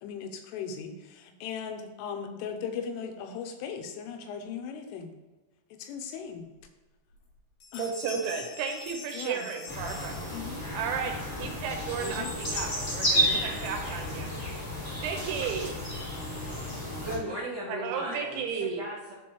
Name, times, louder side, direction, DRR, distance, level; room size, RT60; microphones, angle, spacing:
voice 1, 0.0-5.1 5.7-6.5 7.7-7.9 9.1-9.4 10.3-10.7 12.0-12.4 13.2-13.5, left 6 dB, 90° left, 5 dB, 3.3 m, -38 dB
sound 1, 6.6-6.7 7.1-7.3 7.6-10.8, left 5 dB, 60° left, 2.5 m, -45 dB
voice 2, 7.8-10.2 10.7-14.3 15.0-15.8 17.7-18.8, right 6 dB, 80° right, 3 dB, 3.0 m, -34 dB
sound 2, 9.7-17.2, equal, 25° left, 1.3 m, -32 dB
voice 3, 17.0-19.1, right 1 dB, 35° right, -11 dB, 1.7 m, -36 dB
12.5 x 4.2 x 3.1 m, 1.2 s
omnidirectional pair, 5.7 m